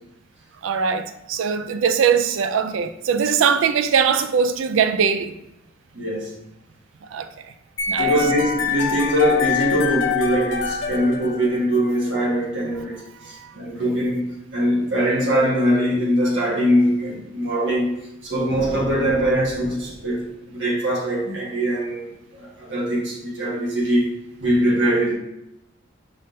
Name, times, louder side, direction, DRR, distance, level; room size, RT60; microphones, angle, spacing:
voice 1, 0.6-5.3 7.1-7.3 7.9-8.1 13.2-13.5, right 6 dB, 90° right, 0.4 m, -21 dB
voice 2, 5.9-6.4 8.0-25.1, equal, 70° right, 1.5 m, -22 dB
sound 1, 7.8-11.9, left 6 dB, 75° left, 0.6 m, -25 dB
sound 2, 18.5-20.6, right 1 dB, 45° right, 1.2 m, -37 dB
5.3 x 3.8 x 2.6 m
head